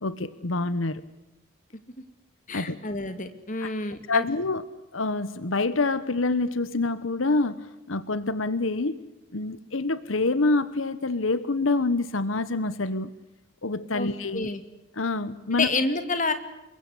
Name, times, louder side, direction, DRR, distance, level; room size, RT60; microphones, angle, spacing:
voice 1, 0.0-1.0 2.5-2.8 3.6-3.7 4.1-9.0 9.3-13.1 13.6-14.5 15.0-15.7, left 3 dB, 85° left, 14 dB, 1.2 m, -26 dB
voice 2, 2.5-4.2 13.9-14.1 14.3-14.6 15.5-16.3, left 3 dB, 40° left, 9 dB, 2.5 m, -28 dB
28.0 x 23.0 x 8.3 m, 0.95 s
head